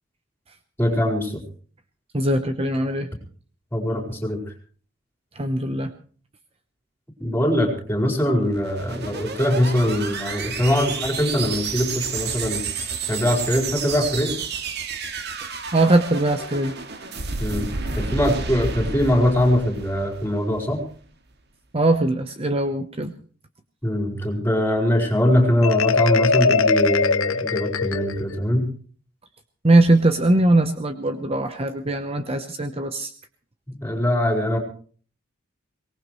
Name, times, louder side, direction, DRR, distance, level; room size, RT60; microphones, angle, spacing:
voice 1, 0.8-1.4 3.7-4.4 7.2-12.6 13.1-14.3 17.4-17.7 18.0-20.8 23.8-28.7 33.8-34.6, left 1 dB, 10° left, 1 dB, 4.6 m, -22 dB
voice 2, 2.1-3.1 5.4-5.9 15.7-16.7 21.7-23.1 29.6-33.1, right 2 dB, 30° right, 8 dB, 0.9 m, -20 dB
sound 1, 8.4-20.8, right 4 dB, 55° right, 1.9 m, -31 dB
Marimba xylophone, 25.6-28.4, left 4 dB, 85° left, 0.9 m, -21 dB
23.5 x 19.0 x 3.2 m, 0.43 s
head